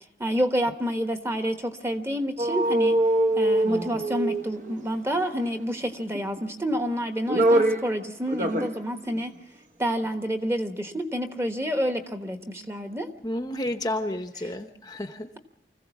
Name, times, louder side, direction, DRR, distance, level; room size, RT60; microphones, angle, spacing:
voice 1, 0.2-3.0 3.4-9.3 9.8-12.4 12.7-13.1, equal, 15° right, 6 dB, 1.3 m, -28 dB
sound 1, 2.4-4.9 6.1-6.7 7.1-7.9 8.3-8.8 9.1-9.2, right 1 dB, 45° right, 1.1 m, -23 dB
voice 2, 13.2-15.3, left 1 dB, 20° left, 6 dB, 0.8 m, -31 dB
25.0 x 15.5 x 7.2 m, 0.79 s
head